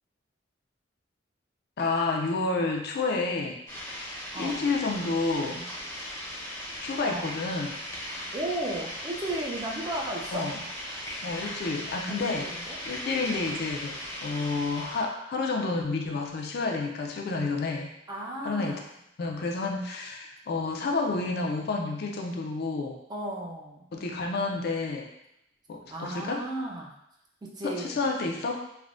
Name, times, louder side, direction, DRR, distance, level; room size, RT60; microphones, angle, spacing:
voice 1, 1.8-3.6 4.4-5.6 6.8-7.7 10.3-10.6 11.2-12.5 12.9-17.9 18.4-18.8 19.2-23.0 23.9-25.1 25.7-26.5 27.6-28.6, left 3 dB, 55° left, 1 dB, 0.4 m, -30 dB
sound 1, 3.7-15.0, equal, 15° left, 0.6 m, -38 dB
voice 2, 4.3-4.7 7.0-7.3 8.1-10.5 12.1-12.8 18.1-18.9 23.1-23.9 25.9-26.9 27.4-28.0, right 1 dB, 20° right, -2 dB, 0.4 m, -35 dB
3.3 x 2.1 x 2.4 m, 0.80 s
head